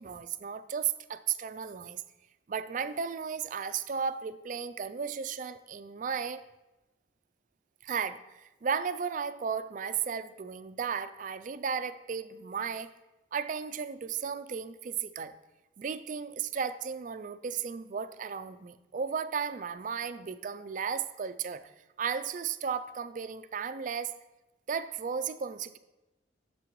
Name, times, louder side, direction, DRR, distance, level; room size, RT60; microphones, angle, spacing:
voice 1, 0.0-2.0 2.5-6.4 7.8-12.9 13.3-15.3 15.8-21.7 22.0-24.1 24.7-25.8, right 6 dB, 45° right, 12 dB, 0.3 m, -34 dB
11.5 x 6.7 x 3.1 m, 1.0 s
head